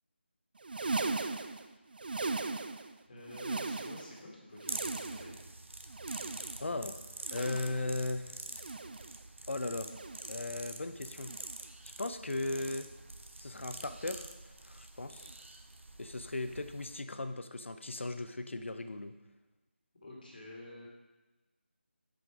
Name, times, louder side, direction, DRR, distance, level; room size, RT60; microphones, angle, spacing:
sound 1, 0.6-3.0 3.2-4.2 4.5-5.5 5.9-6.8 7.2-8.0 8.5-9.2 9.9-10.4 11.2-11.7 12.5-12.9 13.8-14.2 15.1-15.3 16.5-16.6, right 3 dB, 50° right, 0.4 m, -39 dB
voice 1, 3.1-5.4 20.0-20.9, left 1 dB, 45° left, -2 dB, 1.8 m, -49 dB
sound 2, 4.7-17.0, right 2 dB, 90° right, 0.7 m, -46 dB
voice 2, 6.6-7.0 7.3-8.4 9.5-9.9 10.3-11.3 11.8-12.9 13.4-15.3 16.0-19.2, left 2 dB, 90° left, 9 dB, 0.6 m, -37 dB
6.1 x 5.1 x 4.5 m, 1.2 s
figure-of-eight pair, 170°, 6 cm